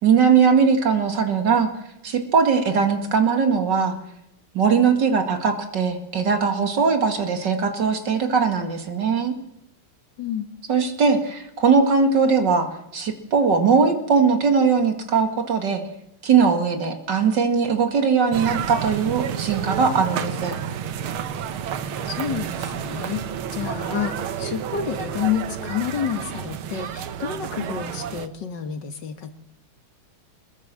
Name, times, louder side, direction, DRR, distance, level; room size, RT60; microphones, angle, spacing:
voice 1, 0.0-1.7 2.0-4.0 4.5-9.3 10.7-15.8 16.2-20.6, right 5 dB, 55° right, 6 dB, 2.6 m, -20 dB
voice 2, 10.2-10.5 22.1-23.2 23.5-29.3, left 8 dB, 60° left, 8 dB, 2.1 m, -29 dB
sound 1, 18.3-28.3, right 9 dB, 90° right, 2.0 m, -30 dB
23.0 x 21.0 x 7.6 m, 0.82 s
omnidirectional pair, 2.2 m